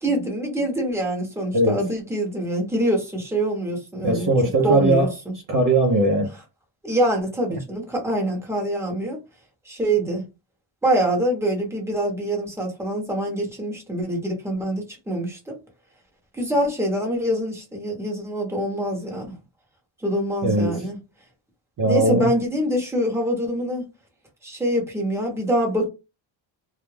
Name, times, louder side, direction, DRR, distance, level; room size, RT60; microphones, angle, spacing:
voice 1, 0.0-4.3 4.6-5.3 6.8-9.2 9.6-10.2 10.8-15.6 16.3-19.4 20.0-21.0 21.8-23.9 24.4-25.9, right 1 dB, 5° right, 1.0 m, -25 dB
voice 2, 4.0-5.1 5.5-6.3 20.4-20.7 21.8-22.3, right 2 dB, 45° right, 0.7 m, -19 dB
2.3 x 2.1 x 3.2 m
cardioid pair, 105°, 46 cm